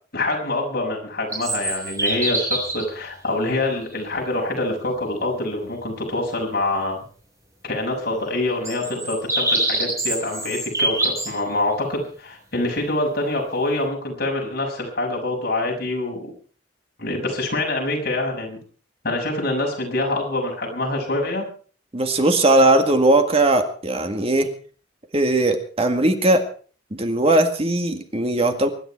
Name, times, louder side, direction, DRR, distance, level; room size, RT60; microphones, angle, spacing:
voice 1, 0.1-7.0 7.6-16.3 17.0-18.6 19.0-21.4, left 2 dB, 60° left, 0 dB, 6.5 m, -25 dB
sound 1, 1.3-2.9 3.9-4.0 8.6-11.3, right 2 dB, 20° right, 6.2 m, -24 dB
voice 2, 21.9-24.5 25.1-26.4 26.9-28.7, right 2 dB, 35° right, 6 dB, 1.9 m, -19 dB
24.0 x 11.5 x 4.6 m, 0.42 s
head